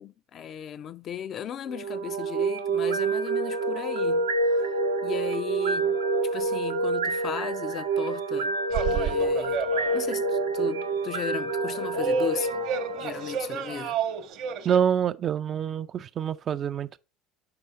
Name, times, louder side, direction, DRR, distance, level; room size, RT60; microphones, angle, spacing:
voice 1, 0.0-4.3 5.0-6.0 6.3-8.6 8.8-9.6 9.9-12.5 13.0-14.0, left 9 dB, 45° left, 0.4 m, -36 dB
sound 1, 1.7-13.8, right 3 dB, 80° right, 0.6 m, -27 dB
sound 2, 8.7-10.3 10.5-10.7 11.5-14.8, right 6 dB, 55° right, 0.9 m, -31 dB
voice 2, 14.6-17.0, right 8 dB, 40° right, 0.3 m, -26 dB
5.8 x 4.7 x 4.0 m
figure-of-eight pair, 65°, 0 cm